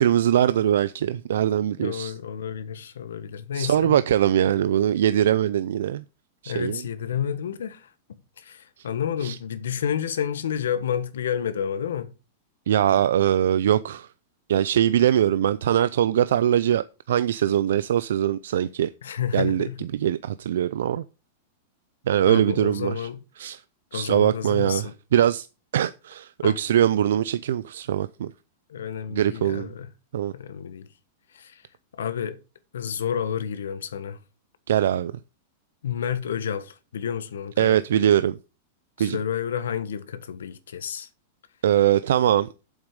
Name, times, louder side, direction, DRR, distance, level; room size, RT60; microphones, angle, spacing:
voice 1, 0.0-2.1 3.5-6.0 6.4-6.8 8.8-8.9 9.2-9.4 12.7-14.1 14.5-18.9 19.3-21.0 22.1-23.1 23.4-23.6 23.9-25.5 25.7-28.3 29.1-29.7 30.1-30.3 34.7-35.1 37.6-38.4 39.0-39.2 41.6-42.5, right 10 dB, 80° right, 0.5 m, -22 dB
voice 2, 1.8-4.0 6.5-7.9 8.4-12.1 19.0-19.8 22.2-23.2 23.9-24.9 26.4-26.6 28.7-29.9 30.3-30.9 31.3-31.6 32.0-32.4 32.7-34.2 35.8-38.0 39.0-41.1, left 8 dB, 90° left, 1.3 m, -30 dB
8.0 x 7.3 x 5.3 m
hypercardioid pair, 130°, 0 cm